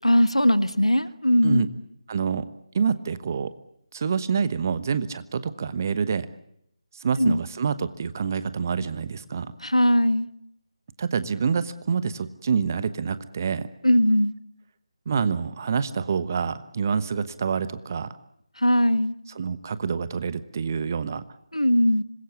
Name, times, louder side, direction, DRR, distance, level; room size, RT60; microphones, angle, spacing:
voice 1, 0.0-1.6 7.2-7.4 9.6-10.3 13.8-14.3 18.6-19.1 21.5-22.0, equal, 85° left, 13 dB, 1.5 m, -20 dB
voice 2, 2.1-2.4 2.7-3.5 3.9-6.3 7.0-9.5 11.0-13.7 15.1-18.1 19.4-21.2, right 6 dB, 30° right, 14 dB, 1.1 m, -27 dB
26.0 x 21.0 x 8.4 m, 0.75 s
figure-of-eight pair, 155°, 3 cm